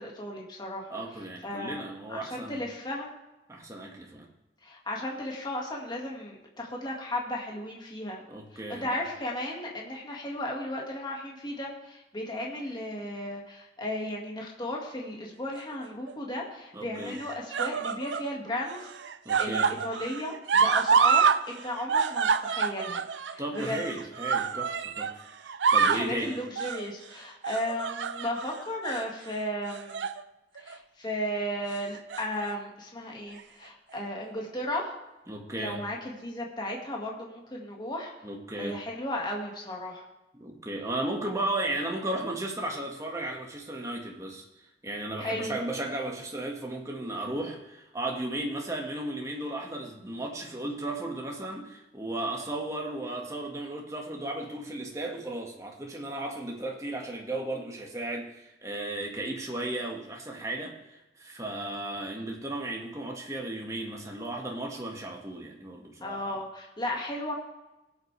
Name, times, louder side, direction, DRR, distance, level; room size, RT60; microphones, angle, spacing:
voice 1, 0.0-0.9 1.4-1.8 2.1-3.1 4.6-8.2 8.7-18.8 19.4-23.0 23.3-23.8 25.9-30.0 30.6-34.9 35.6-38.1 38.6-40.0 45.2-45.5 66.0-67.3, left 1 dB, 25° left, -1 dB, 2.0 m, -35 dB
voice 2, 0.9-2.7 3.5-4.3 8.3-9.0 16.7-17.2 19.3-19.8 23.4-25.2 25.4-26.4 35.3-35.9 38.2-38.8 40.3-44.5 44.8-66.4, right 1 dB, 15° right, 0 dB, 1.7 m, -35 dB
sound 1, 15.6-16.1 17.0-18.3 18.7-21.4 21.7-25.1 25.5-26.1 26.6-26.9 27.4-28.5 28.8-29.1 29.7-30.2 30.6-30.8 31.9-32.5 33.4-33.5, right 6 dB, 80° right, 0.5 m, -27 dB
19.0 x 8.2 x 3.4 m, 0.99 s
head